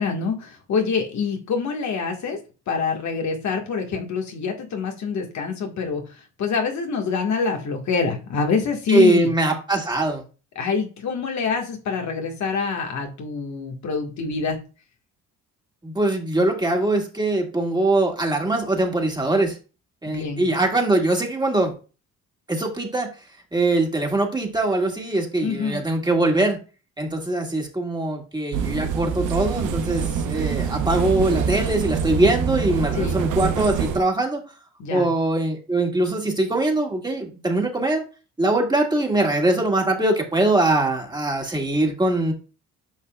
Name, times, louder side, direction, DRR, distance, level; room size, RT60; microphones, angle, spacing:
voice 1, 0.0-2.4 2.7-6.0 6.4-9.3 10.5-14.6 20.0-20.5 25.4-25.8 33.0-33.2 34.8-35.1, left 5 dB, 65° left, 2 dB, 1.7 m, -26 dB
voice 2, 8.9-10.2 15.8-19.6 20.0-21.7 22.5-23.1 23.5-26.6 27.0-34.4 34.9-38.0 38.4-42.3, right 2 dB, 15° right, 1 dB, 2.0 m, -22 dB
sound 1, 28.5-34.0, right 7 dB, 85° right, 0.9 m, -25 dB
9.4 x 5.8 x 2.4 m, 0.34 s
cardioid pair, 90°, 30 cm